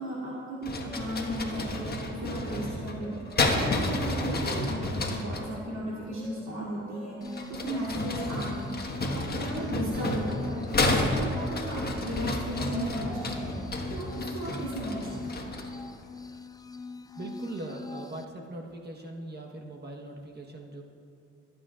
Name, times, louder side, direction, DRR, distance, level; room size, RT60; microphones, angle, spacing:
voice 1, 0.0-3.2 3.4-8.8 9.1-15.5, right 1 dB, 65° right, -8 dB, 2.8 m, -35 dB
sound 1, 0.6-5.5 7.2-15.8, left 2 dB, 30° left, 1.5 m, -31 dB
Brass instrument, 0.8-1.5 1.7-4.2 5.2-8.5 9.8-13.7 14.6-15.1, equal, ahead, 1.4 m, -48 dB
sound 2, 7.2-18.2, left 3 dB, 15° left, 0.4 m, -42 dB
voice 2, 17.2-20.8, right 2 dB, 35° right, 0 dB, 1.2 m, -40 dB
27.0 x 9.1 x 2.5 m, 2.6 s
cardioid pair, 90°, 30 cm